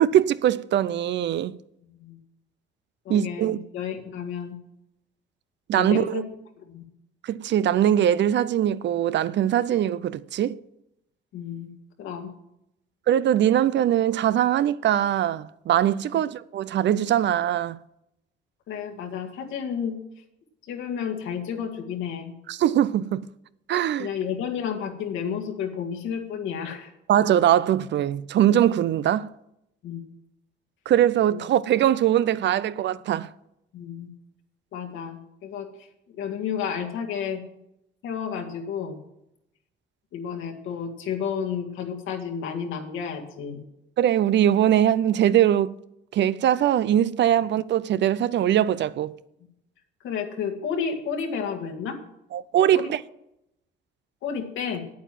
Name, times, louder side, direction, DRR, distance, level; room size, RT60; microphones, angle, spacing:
voice 1, 0.0-1.5 3.1-3.6 5.7-6.2 7.2-10.6 13.1-17.8 22.5-23.2 23.7-24.1 27.1-29.3 30.9-33.3 44.0-45.8 46.1-49.2 52.3-53.0, right 11 dB, 65° right, 0.5 m, -21 dB
voice 2, 3.1-4.6 5.7-6.3 6.6-6.8 11.3-11.7 12.0-12.3 16.1-16.2 18.7-20.0 20.7-22.3 24.0-26.9 29.8-30.0 31.3-31.4 33.7-34.1 34.7-35.7 36.2-37.4 38.0-39.0 40.1-43.6 50.0-52.0 52.7-52.9 54.2-54.8, left 7 dB, 85° left, 2.0 m, -31 dB
9.2 x 8.6 x 7.5 m
cardioid pair, 90°, 20 cm